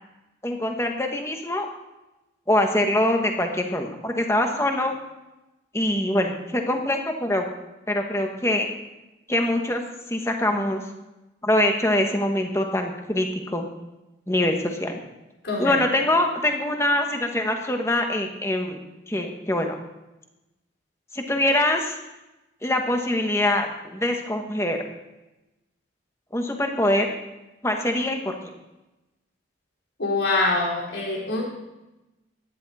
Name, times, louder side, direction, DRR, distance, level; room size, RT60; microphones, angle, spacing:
voice 1, 0.4-1.7 2.5-4.9 5.7-7.5 7.9-8.7 9.3-9.8 10.1-10.8 11.4-13.7 14.3-15.0 15.6-18.8 19.1-19.8 21.1-22.0 22.6-24.8 26.3-27.1 27.6-28.4, left 1 dB, 15° left, 4 dB, 1.2 m, -24 dB
voice 2, 15.4-15.8 30.0-31.4, left 2 dB, 80° left, -3 dB, 4.3 m, -24 dB
15.0 x 10.5 x 4.2 m, 1.0 s
head